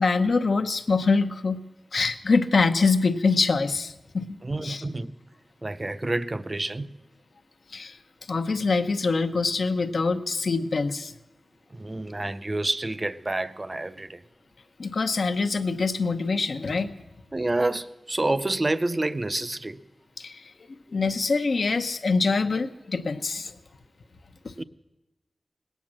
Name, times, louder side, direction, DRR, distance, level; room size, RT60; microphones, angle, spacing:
voice 1, 0.0-1.6 1.9-4.4 4.6-4.8 7.7-8.0 8.3-11.1 14.8-16.9 20.2-23.5 24.4-24.5, left 4 dB, 65° left, 0.8 m, -24 dB
voice 2, 4.4-5.2 5.6-6.9 11.7-14.2 17.3-19.8 24.6-24.7, right 2 dB, 30° right, 0.5 m, -28 dB
19.0 x 9.2 x 7.4 m
wide cardioid pair, 95°, 0 cm